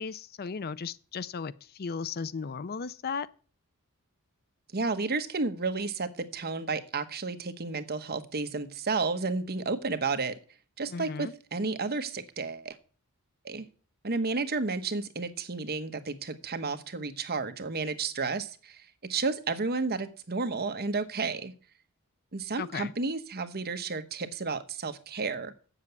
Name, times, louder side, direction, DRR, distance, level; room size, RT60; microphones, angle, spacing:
voice 1, 0.0-3.3 10.9-11.3 22.6-22.9, left 5 dB, 45° left, 0.5 m, -35 dB
voice 2, 4.7-10.4 10.8-12.8 13.4-13.6 14.0-21.5 22.3-25.5, right 4 dB, 45° right, 1.1 m, -32 dB
7.9 x 7.5 x 8.3 m
head